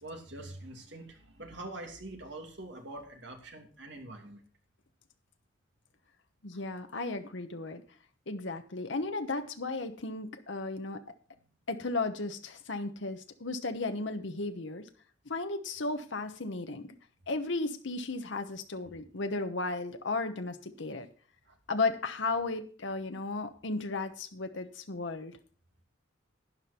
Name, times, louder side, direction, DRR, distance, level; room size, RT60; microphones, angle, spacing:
voice 1, 0.0-4.4 21.5-21.6, right 2 dB, 65° right, 3 dB, 2.8 m, -44 dB
voice 2, 6.4-7.8 8.3-11.0 11.7-14.8 15.3-16.9 17.3-21.1 21.7-25.4, left 3 dB, 70° left, 7 dB, 1.0 m, -34 dB
12.0 x 9.5 x 4.4 m, 0.43 s
head